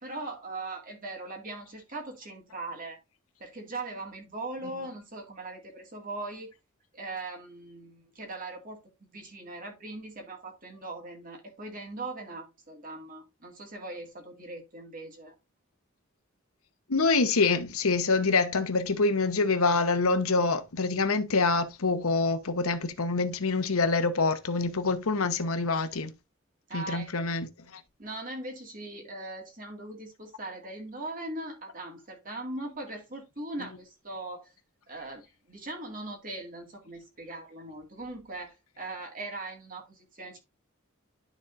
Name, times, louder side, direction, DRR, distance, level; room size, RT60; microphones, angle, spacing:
voice 1, 0.0-3.0 3.4-6.5 6.9-8.8 9.1-15.3 26.7-27.1 28.0-34.5 34.9-35.2 35.5-40.4, right 2 dB, 40° right, 2.1 m, -40 dB
voice 2, 16.9-26.1 26.7-27.5, left 3 dB, 85° left, 0.9 m, -26 dB
12.0 x 4.0 x 2.5 m
head